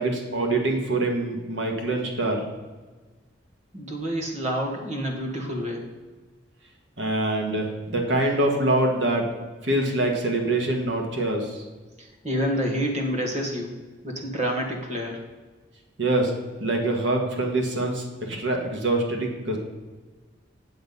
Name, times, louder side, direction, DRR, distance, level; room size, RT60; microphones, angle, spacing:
voice 1, 0.0-2.5 7.0-9.3 9.6-11.6 16.0-16.3 16.6-19.6, right 2 dB, 70° right, 2 dB, 1.6 m, -25 dB
voice 2, 3.7-5.8 12.0-13.7 14.0-15.2, equal, 35° right, 1 dB, 1.7 m, -28 dB
8.0 x 7.8 x 5.4 m, 1.3 s
head